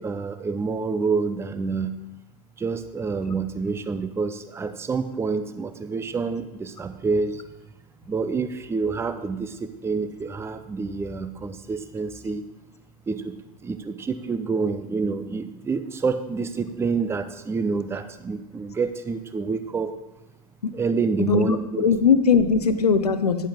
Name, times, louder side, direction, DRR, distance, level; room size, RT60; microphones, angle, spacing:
voice 1, 0.0-1.9 2.6-7.4 8.1-12.4 13.1-20.0 20.7-21.8, right 4 dB, 15° right, 10 dB, 0.6 m, -28 dB
voice 2, 21.2-23.5, left 6 dB, 80° left, 10 dB, 0.7 m, -20 dB
10.5 x 7.3 x 3.6 m, 0.93 s
figure-of-eight pair, 85°, 20 cm